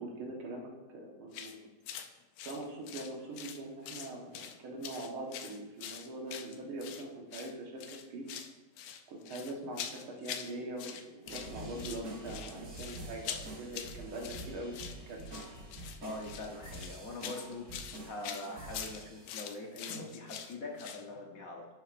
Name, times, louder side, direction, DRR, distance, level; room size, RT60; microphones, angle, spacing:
voice 1, 0.0-1.6 2.5-8.2 9.1-15.3, right 1 dB, 90° right, 0 dB, 2.1 m, -42 dB
sound 1, 1.3-1.6 1.9-2.1 2.4-3.6 3.8-4.6 4.8-7.0 7.3-7.5 7.8-8.5 8.8-10.5 10.8-11.5 11.8-21.0, left 9 dB, 80° left, 1.4 m, -44 dB
sound 2, 11.3-19.5 19.9-20.0, right 1 dB, 40° right, 1.5 m, -46 dB
voice 2, 16.0-17.7 18.0-21.7, left 2 dB, 55° left, 1 dB, 1.1 m, -43 dB
10.5 x 7.1 x 2.5 m, 1.1 s
omnidirectional pair, 2.2 m